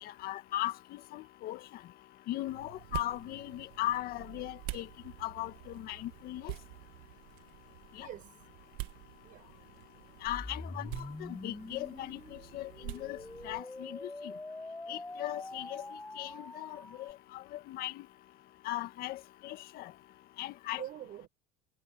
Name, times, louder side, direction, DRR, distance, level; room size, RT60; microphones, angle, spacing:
voice 1, 0.0-1.6 2.3-4.9 5.2-6.5 8.0-8.1 10.2-10.9 11.2-13.2 13.4-14.1 14.9-15.8 16.2-18.0 18.6-19.9 20.4-20.8, left 15 dB, 55° left, 1.9 m, -38 dB
sound 1, 2.5-13.6, right 20 dB, 80° right, 2.0 m, -47 dB
voice 2, 8.0-8.5 9.2-9.6 10.8-11.0 20.7-21.3, right 13 dB, 50° right, 7.2 m, -46 dB
sound 2, 10.3-17.1, left 2 dB, 10° left, 6.7 m, -45 dB
supercardioid pair, 125°, 18 cm